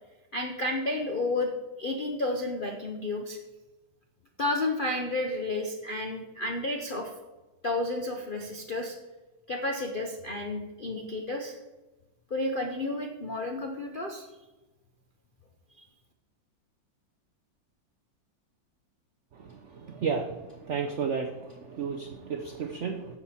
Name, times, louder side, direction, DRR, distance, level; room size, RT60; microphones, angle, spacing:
voice 1, 0.3-1.5 1.8-3.4 4.4-7.1 7.6-9.0 9.5-11.6 12.3-14.3 15.8-15.9, left 2 dB, 60° left, 3 dB, 0.5 m, -31 dB
voice 2, 20.7-21.3 21.8-23.0, right 6 dB, 80° right, 5 dB, 0.6 m, -31 dB
10.0 x 7.2 x 4.2 m, 1.1 s
omnidirectional pair, 2.1 m